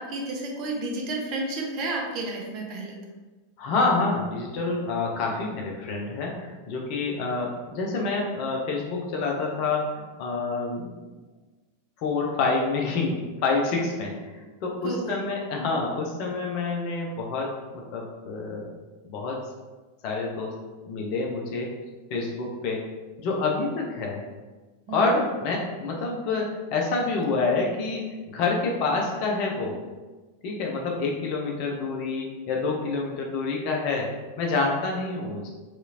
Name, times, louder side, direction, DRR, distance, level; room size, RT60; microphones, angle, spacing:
voice 1, 0.0-3.0 14.8-15.3 24.9-25.3, right 2 dB, 40° right, 0 dB, 0.6 m, -31 dB
voice 2, 3.6-10.9 12.0-18.7 19.0-19.4 20.0-20.5 20.9-21.7 22.1-22.8 23.2-24.2 24.9-29.8 30.4-34.1 34.4-35.5, left 3 dB, 45° left, 0 dB, 0.5 m, -27 dB
2.8 x 2.4 x 2.7 m, 1.2 s
figure-of-eight pair, 90°, 0 cm